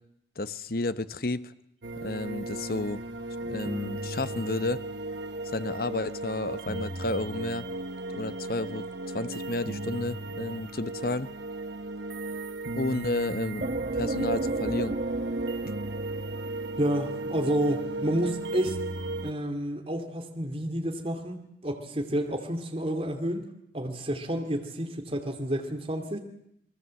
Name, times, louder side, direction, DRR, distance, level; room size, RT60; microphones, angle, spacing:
voice 1, 0.4-1.5 2.0-3.0 3.4-4.8 5.4-7.7 8.1-8.9 9.1-11.3 12.8-15.0, left 2 dB, 55° left, 13 dB, 1.0 m, -31 dB
sound 1, 1.8-19.3, right 2 dB, 75° right, 1.4 m, -35 dB
sound 2, 13.6-17.2, right 2 dB, 50° right, 1.2 m, -33 dB
voice 2, 16.8-18.8 19.2-23.5 23.7-26.2, right 1 dB, 30° right, 4 dB, 2.6 m, -30 dB
28.5 x 21.0 x 7.7 m, 0.76 s
head